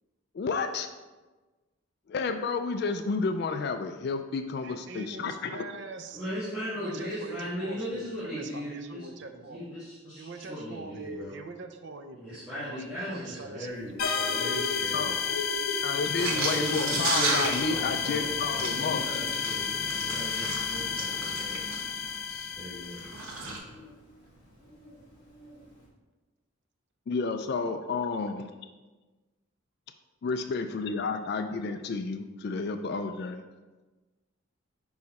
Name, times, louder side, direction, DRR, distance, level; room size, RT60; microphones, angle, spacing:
voice 1, 0.3-0.9 2.1-5.6 14.9-15.1 15.8-19.0 27.1-28.5 30.2-33.4, left 4 dB, 50° left, 7 dB, 0.3 m, -31 dB
voice 2, 4.6-6.3 6.7-9.6 10.2-13.7 13.9-15.6 16.2-16.5, right 3 dB, 55° right, 6 dB, 0.5 m, -44 dB
voice 3, 6.1-11.4 12.1-15.1 16.2-18.3 18.5-21.8 22.2-23.8, equal, 5° right, -12 dB, 1.5 m, -38 dB
Bird, 13.7-25.8, left 2 dB, 25° left, 2.0 m, -43 dB
sound 1, 14.0-23.4, left 6 dB, 85° left, 0.7 m, -31 dB
sound 2, 16.0-22.2 22.9-23.6, right 2 dB, 80° right, 1.1 m, -34 dB
5.2 x 4.7 x 4.1 m, 1.2 s
head